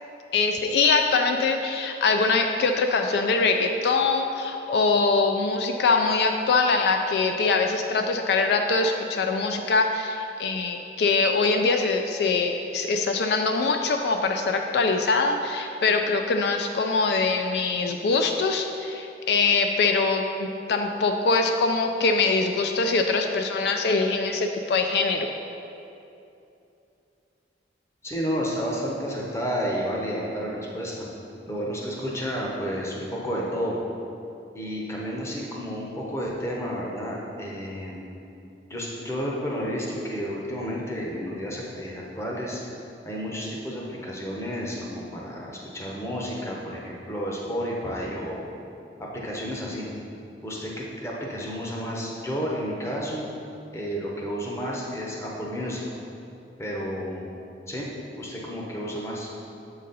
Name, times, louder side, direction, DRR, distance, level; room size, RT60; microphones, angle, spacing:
voice 1, 0.3-25.3, left 4 dB, 65° left, 5 dB, 0.3 m, -23 dB
voice 2, 28.0-31.1 31.5-33.8 34.5-38.1 38.7-42.6 43.0-48.5 49.0-49.9 50.4-53.3 53.7-55.8 56.6-57.3 57.7-57.9 58.2-59.3, equal, 15° left, -3 dB, 0.8 m, -31 dB
7.3 x 4.0 x 4.0 m, 2.8 s
head